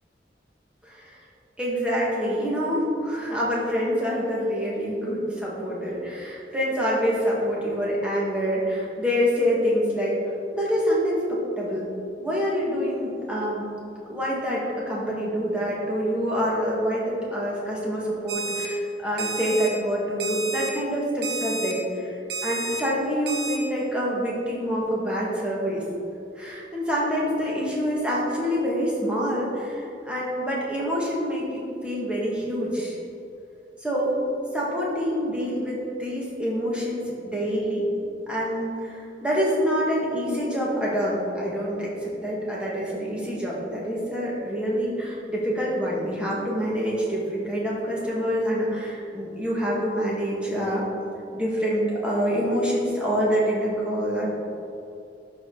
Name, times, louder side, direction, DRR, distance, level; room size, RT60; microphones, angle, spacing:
voice 1, 0.8-1.2 1.6-10.2 10.5-11.9 12.2-13.7 14.1-25.8 26.4-33.0 33.8-34.2 34.5-37.9 38.3-50.9 51.3-54.3, equal, 5° right, -6 dB, 1.8 m, -26 dB
Alarm, 18.3-18.7 19.2-19.7 20.2-20.7 21.2-21.7 22.3-22.8 23.3-23.6, right 3 dB, 65° right, 1.1 m, -31 dB
12.5 x 4.8 x 4.0 m, 2.7 s
head